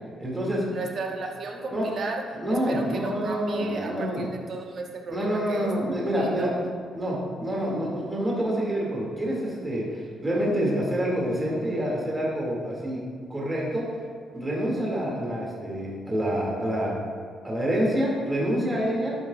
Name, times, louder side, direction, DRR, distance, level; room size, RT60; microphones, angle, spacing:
voice 1, 0.2-0.7 1.7-1.9 2.4-4.3 5.1-6.5 6.9-13.0 13.3-13.9 14.3-17.0 17.4-19.2, equal, 20° right, -4 dB, 2.2 m, -27 dB
voice 2, 0.7-2.2 2.5-5.7 6.1-6.5, right 3 dB, 55° right, 2 dB, 1.2 m, -35 dB
11.0 x 8.6 x 2.4 m, 2.2 s
cardioid pair, 90°, 0 cm